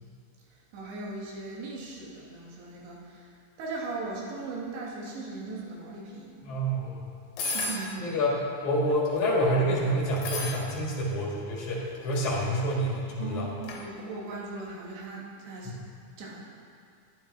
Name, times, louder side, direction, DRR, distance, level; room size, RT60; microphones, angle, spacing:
voice 1, 0.7-3.3 3.6-6.4 7.5-8.1 13.2-15.8 16.2-16.4, right 3 dB, 75° right, -3 dB, 3.8 m, -38 dB
voice 2, 6.4-7.0 8.0-13.5, equal, 50° left, -5 dB, 3.0 m, -27 dB
sound 1, 7.4-7.9 8.8-9.2 10.2-10.6 11.8-12.2 13.6-13.8, left 2 dB, 70° left, 3.0 m, -33 dB
11.5 x 10.5 x 4.2 m, 2.4 s
omnidirectional pair, 5.3 m